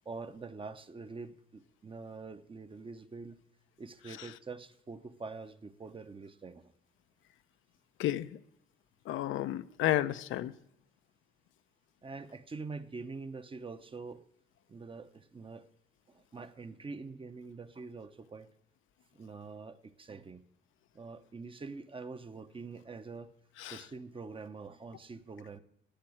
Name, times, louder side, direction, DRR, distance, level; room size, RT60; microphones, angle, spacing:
voice 1, 0.0-3.4 3.8-6.7 12.0-14.2 14.7-15.6 16.1-18.5 19.1-20.4 20.9-23.3 23.6-25.6, right 4 dB, 25° right, 0.8 m, -45 dB
voice 2, 8.0-8.4 9.1-10.5 23.6-23.8, left 13 dB, 80° left, 0.6 m, -32 dB
10.0 x 7.7 x 8.4 m
cardioid pair, 90°, 20 cm